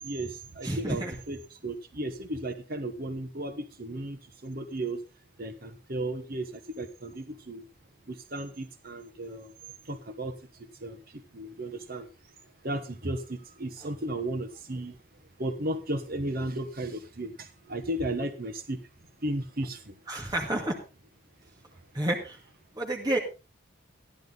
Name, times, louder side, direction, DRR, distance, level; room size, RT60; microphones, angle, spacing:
voice 1, 0.0-5.0 5.4-7.6 8.1-9.5 9.8-12.1 12.6-15.0 15.4-18.8 19.2-19.9, right 1 dB, 45° right, 7 dB, 1.2 m, -35 dB
voice 2, 0.6-1.1 20.1-20.8 21.9-22.4 22.8-23.2, right 1 dB, 20° right, 0 dB, 2.1 m, -29 dB
14.5 x 11.0 x 3.9 m, 0.31 s
head